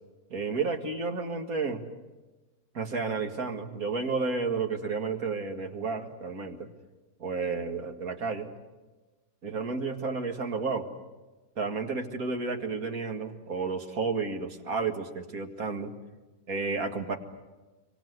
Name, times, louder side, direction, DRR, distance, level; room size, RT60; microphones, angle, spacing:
voice 1, 0.3-1.8 2.7-6.7 7.2-8.5 9.4-10.9 11.6-15.9 16.5-17.2, right 4 dB, 65° right, 4 dB, 2.4 m, -31 dB
26.5 x 24.5 x 8.1 m, 1.2 s
omnidirectional pair, 1.7 m